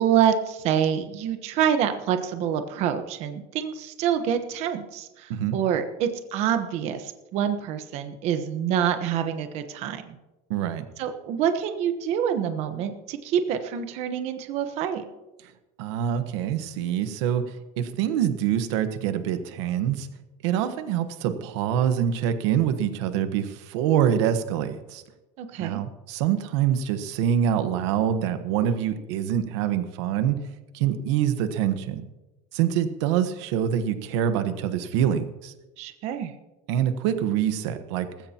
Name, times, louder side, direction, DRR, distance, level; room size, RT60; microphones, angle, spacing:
voice 1, 0.0-10.1 11.0-15.0 25.4-25.8 35.8-36.3, right 9 dB, 50° right, 8 dB, 1.1 m, -26 dB
voice 2, 10.5-10.9 15.8-20.1 20.4-25.0 25.6-30.4 30.7-32.1 32.5-35.5 36.7-38.1, right 9 dB, 85° right, 9 dB, 1.3 m, -25 dB
19.5 x 15.5 x 2.9 m, 1.0 s
cardioid pair, 160°, 14 cm